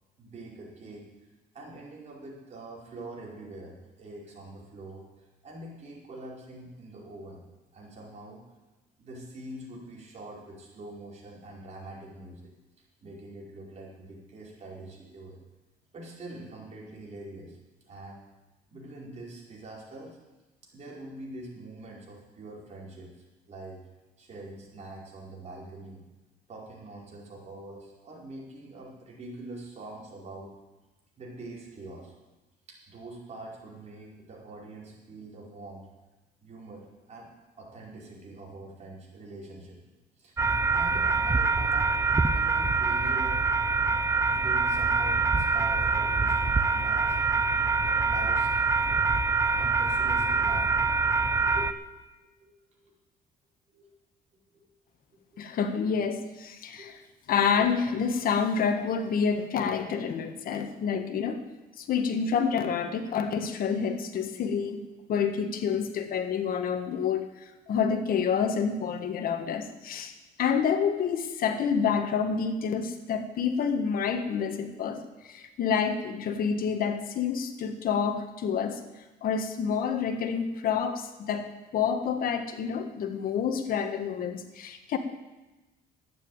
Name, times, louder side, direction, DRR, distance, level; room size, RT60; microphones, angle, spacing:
voice 1, 0.2-1.1 1.5-7.4 7.7-8.4 9.0-12.5 13.0-15.4 15.9-18.2 18.7-20.2 20.6-23.8 24.2-26.0 26.5-30.5 31.2-32.1 32.7-35.9 36.4-37.3 37.6-39.8 40.2-40.4 40.7-41.9 42.3-43.5 44.3-47.2 47.9-48.5 49.5-50.9 51.4-51.7 52.2-52.5 52.8-52.9 53.7-53.9 55.3-55.5 56.8-56.9, right 2 dB, 40° right, -3 dB, 4.9 m, -44 dB
sound 1, 40.4-51.7, right 4 dB, 15° right, 0.7 m, -25 dB
voice 2, 55.4-57.0 57.3-61.4 61.8-64.8 65.1-70.1 70.4-78.8 79.2-81.5 81.7-85.0, left 6 dB, 60° left, 7 dB, 1.6 m, -28 dB
11.5 x 9.2 x 8.9 m, 1.1 s
cardioid pair, 110°, 17 cm